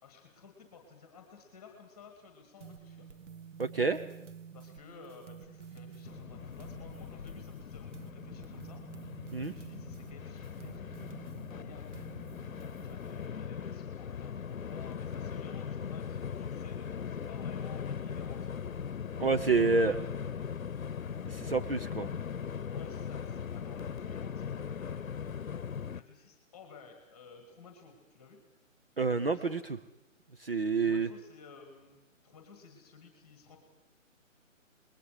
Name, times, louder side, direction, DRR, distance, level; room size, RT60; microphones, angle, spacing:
voice 1, 0.0-3.1 4.5-8.8 9.4-10.8 11.1-12.3 12.8-18.5 19.8-20.5 22.7-25.0 25.9-28.4 29.1-29.6 30.8-32.0 32.2-33.6, left 5 dB, 5° left, 4 dB, 1.8 m, -54 dB
sound 1, 2.6-13.3, right 7 dB, 60° right, 1.3 m, -50 dB
voice 2, 3.6-4.0 9.3-9.5 19.2-20.0 21.3-22.1 29.0-29.6 30.4-31.1, right 4 dB, 45° right, 9 dB, 0.8 m, -28 dB
Train, 6.0-26.0, left 7 dB, 75° left, 1.0 m, -40 dB
28.5 x 21.0 x 5.0 m, 0.98 s
hypercardioid pair, 180°, 41 cm